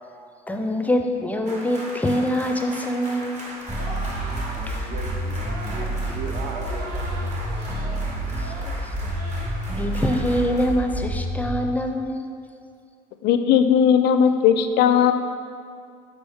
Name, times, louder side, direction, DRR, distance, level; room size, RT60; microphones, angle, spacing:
voice 1, 0.1-3.5 4.7-4.9 8.4-9.1 9.7-12.3, equal, 10° left, 4 dB, 0.4 m, -25 dB
sound 1, 1.5-10.7, right 1 dB, 45° right, 1.1 m, -39 dB
sound 2, 3.7-11.7, right 1 dB, 25° right, 1.1 m, -29 dB
sound 3, 3.7-4.7 5.4-5.9 6.4-8.0 8.3-8.7 9.1-9.5 9.9-10.2, right 1 dB, 85° right, 1.3 m, -39 dB
voice 2, 4.5-7.6 7.8-8.0, right 4 dB, 60° right, 3 dB, 0.7 m, -37 dB
voice 3, 13.2-15.1, left 8 dB, 75° left, 9 dB, 0.4 m, -17 dB
6.1 x 4.8 x 3.5 m, 2.2 s
cardioid pair, 110°, 17 cm